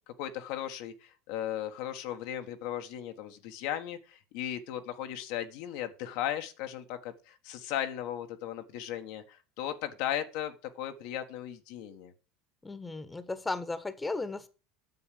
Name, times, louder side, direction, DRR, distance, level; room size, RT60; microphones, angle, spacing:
voice 1, 0.2-12.1, left 11 dB, 70° left, 7 dB, 1.4 m, -36 dB
voice 2, 12.6-14.5, left 3 dB, 15° left, 14 dB, 1.4 m, -35 dB
9.4 x 7.1 x 6.6 m, 0.33 s
hypercardioid pair, 90°, 0 cm